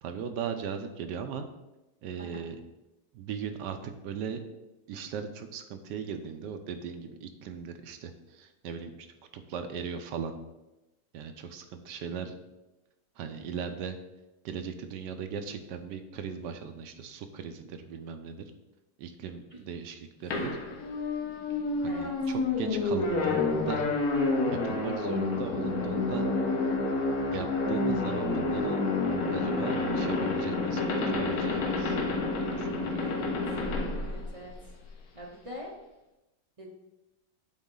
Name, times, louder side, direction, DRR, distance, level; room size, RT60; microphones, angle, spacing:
voice 1, 0.0-1.5 2.0-2.6 3.1-4.4 4.9-9.1 9.3-10.4 11.1-12.4 13.2-14.0 14.4-18.4 19.0-20.5 21.8-23.9 24.5-26.3 27.3-28.9 29.3-32.0 32.3-33.1, right 7 dB, 80° right, 7 dB, 1.3 m, -38 dB
sound 1, 20.3-34.9, left 3 dB, 60° left, 1.3 m, -29 dB
voice 2, 33.0-33.3 34.0-34.5 35.1-35.7 36.6-36.7, left 1 dB, 55° right, -2 dB, 0.3 m, -43 dB
8.3 x 3.9 x 3.7 m, 0.98 s
omnidirectional pair, 1.9 m